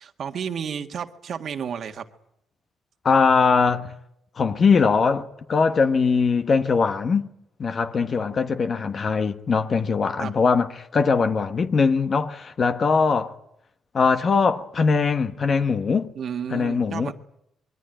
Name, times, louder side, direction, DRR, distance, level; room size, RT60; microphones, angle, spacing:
voice 1, 0.0-2.1 8.3-8.6 10.2-10.3 16.2-17.1, right 7 dB, 60° right, 1.7 m, -32 dB
voice 2, 3.0-3.9 4.4-7.3 7.6-13.4 13.9-16.1 16.5-17.1, left 5 dB, 45° left, 1.2 m, -21 dB
25.0 x 22.0 x 9.1 m
cardioid pair, 90°, 0 cm